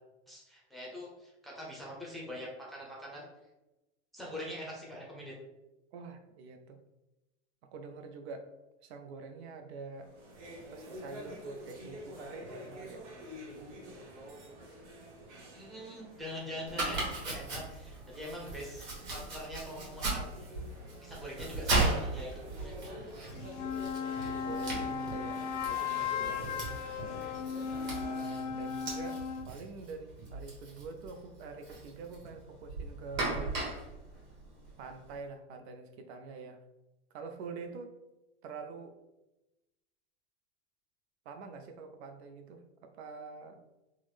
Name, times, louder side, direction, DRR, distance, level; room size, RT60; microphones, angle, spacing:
voice 1, 0.3-3.3 4.1-5.3 15.5-20.5 21.0-23.5 27.0-27.3 28.6-28.7, left 1 dB, ahead, -4 dB, 0.6 m, -44 dB
voice 2, 5.9-6.8 7.7-8.5 8.8-10.1 10.7-13.1 24.4-26.8 27.9-33.6 34.8-36.6 37.1-38.0 38.4-39.0 41.3-43.6, right 4 dB, 65° right, 6 dB, 0.5 m, -46 dB
sound 1, 10.0-28.4, equal, 85° right, 1.0 m, -49 dB
Domestic sounds home sounds, 16.7-35.1, right 2 dB, 30° right, 1.2 m, -38 dB
sound 2, 23.3-29.5, left 7 dB, 80° left, 0.5 m, -36 dB
3.6 x 2.1 x 3.2 m, 1.0 s
supercardioid pair, 135°, 35 cm